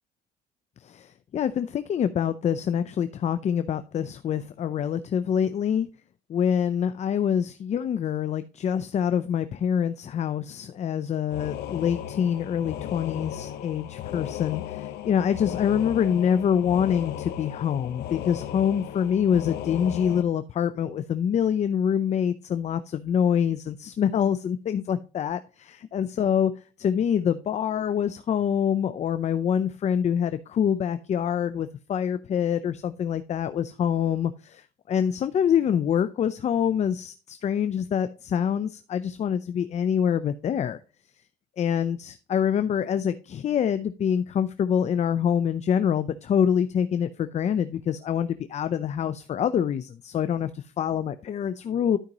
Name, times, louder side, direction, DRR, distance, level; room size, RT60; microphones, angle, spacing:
voice 1, 0.8-5.9 6.3-26.5 26.8-40.8 41.6-52.0, left 8 dB, 40° left, 0.6 m, -25 dB
sound 1, 11.3-20.2, left 11 dB, 80° left, 1.0 m, -36 dB
12.5 x 5.1 x 3.0 m
cardioid pair, 110°, 17 cm